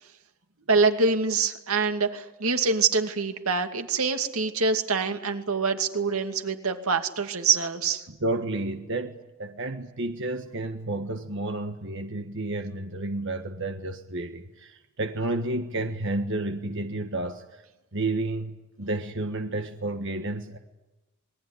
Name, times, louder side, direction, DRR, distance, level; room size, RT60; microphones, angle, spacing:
voice 1, 0.7-8.0, right 4 dB, 85° right, 6 dB, 2.6 m, -25 dB
voice 2, 8.1-9.1 9.4-17.4 17.9-20.6, right 2 dB, 60° right, 6 dB, 1.5 m, -31 dB
27.0 x 21.5 x 10.0 m, 1.1 s
head